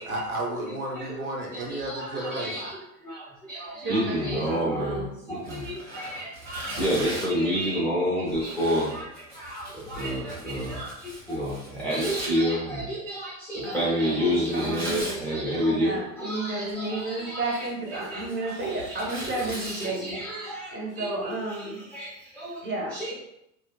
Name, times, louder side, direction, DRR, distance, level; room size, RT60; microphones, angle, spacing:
voice 1, 0.0-2.7, right 1 dB, 75° right, 0 dB, 0.8 m, -32 dB
voice 2, 1.5-2.8 3.0-5.0 5.3-9.1 9.3-15.9 16.2-17.4 18.1-19.0 19.6-21.1 21.9-22.6 22.9-23.1, equal, 5° left, -7 dB, 0.3 m, -29 dB
voice 3, 3.7-5.3 13.6-15.1 15.7-21.8 22.6-23.1, right 2 dB, 25° right, -1 dB, 0.7 m, -33 dB
Tearing, 5.4-7.4 8.3-12.3 14.4-15.2 16.5-17.0 17.4-19.9, right 1 dB, 90° right, 1.5 m, -39 dB
2.6 x 2.1 x 2.2 m, 0.81 s
figure-of-eight pair, 85°, 43 cm